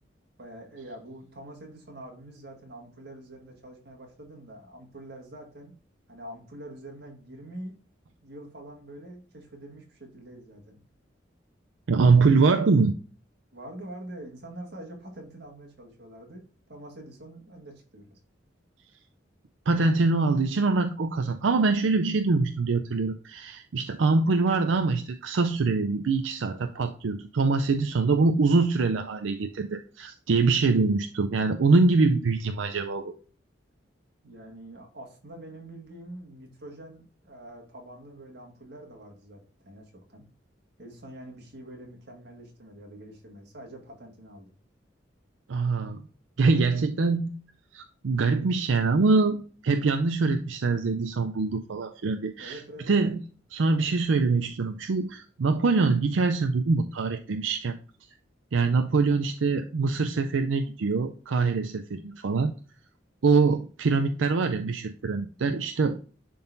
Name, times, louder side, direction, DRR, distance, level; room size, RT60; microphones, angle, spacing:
voice 1, 0.4-5.7 6.1-7.7 8.2-10.8 13.5-16.4 16.7-18.1 34.2-40.2 40.8-44.5 52.4-52.9, right 1 dB, 60° right, 2 dB, 1.9 m, -45 dB
voice 2, 11.9-12.9 19.7-33.1 45.5-46.1 46.4-47.3 47.7-52.6 52.9-53.2 53.5-57.7 58.5-62.5 63.2-66.0, right 3 dB, 90° right, 7 dB, 0.5 m, -24 dB
11.0 x 3.9 x 2.6 m, 0.39 s
head